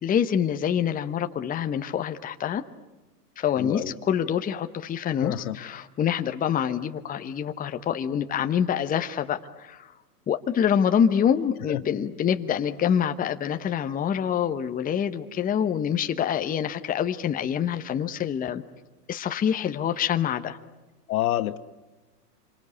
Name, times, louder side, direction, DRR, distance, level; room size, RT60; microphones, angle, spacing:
voice 1, 0.0-2.6 3.4-9.9 10.3-18.6 19.1-20.6, left 8 dB, 15° left, 8 dB, 1.1 m, -26 dB
voice 2, 3.6-3.9 5.2-5.6 11.7-11.8 21.1-21.6, left 14 dB, 60° left, 12 dB, 1.3 m, -27 dB
27.0 x 25.0 x 8.5 m, 1.1 s
hypercardioid pair, 110°, 48 cm